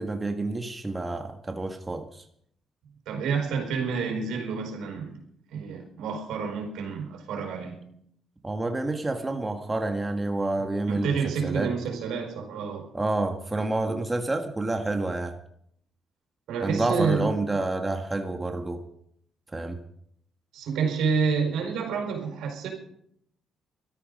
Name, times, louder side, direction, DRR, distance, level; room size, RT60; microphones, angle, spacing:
voice 1, 0.0-2.2 8.4-11.7 12.9-15.3 16.6-18.8 19.5-19.8, right 2 dB, 20° right, 5 dB, 1.5 m, -29 dB
voice 2, 3.1-5.1 5.5-7.8 10.6-12.9 16.5-17.6 20.5-22.7, right 5 dB, 85° right, 3 dB, 4.8 m, -29 dB
17.0 x 13.5 x 5.3 m, 0.69 s
cardioid pair, 90°, 0 cm